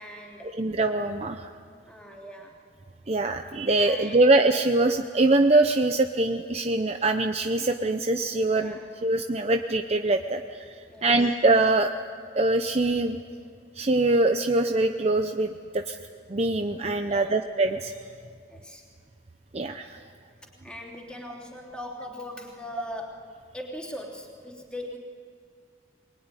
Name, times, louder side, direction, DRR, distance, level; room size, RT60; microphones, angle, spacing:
voice 1, 0.0-0.6 1.9-2.6 3.8-4.2 8.6-8.9 10.9-11.3 17.1-17.3 18.5-18.8 20.6-25.0, left 1 dB, 5° left, -1 dB, 3.3 m, -40 dB
voice 2, 0.5-1.5 3.1-10.8 11.0-11.9 12.3-13.2 13.8-16.0 16.3-17.9 19.5-20.0, right 2 dB, 35° right, 6 dB, 0.7 m, -23 dB
23.0 x 21.5 x 9.9 m, 2.1 s
head